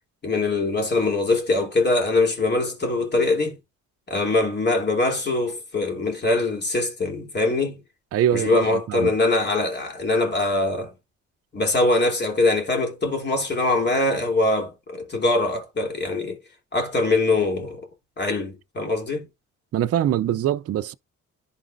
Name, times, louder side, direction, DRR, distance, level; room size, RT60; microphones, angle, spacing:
voice 1, 0.2-3.6 4.1-7.8 8.3-10.9 11.5-16.4 16.7-17.9 18.2-19.3, left 2 dB, 35° left, 3.1 m, -23 dB
voice 2, 8.1-9.1 19.7-20.9, right 11 dB, 50° right, 0.5 m, -23 dB
11.0 x 4.1 x 2.6 m
cardioid pair, 90°, 30 cm